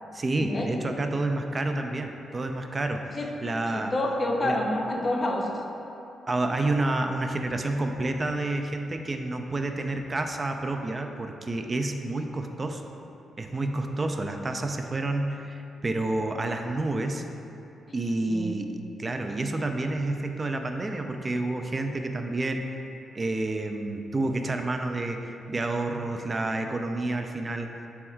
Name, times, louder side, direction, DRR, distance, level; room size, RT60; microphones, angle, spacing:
voice 1, 0.1-3.1 3.4-3.9 4.4-4.6 6.3-12.8 13.4-17.2 17.9-22.7 23.1-27.7, right 2 dB, 35° right, 5 dB, 0.3 m, -29 dB
voice 2, 3.7-5.5 18.3-18.5, left 1 dB, 40° left, 1 dB, 0.5 m, -28 dB
3.4 x 2.3 x 4.4 m, 2.8 s
supercardioid pair, 55°, 0 cm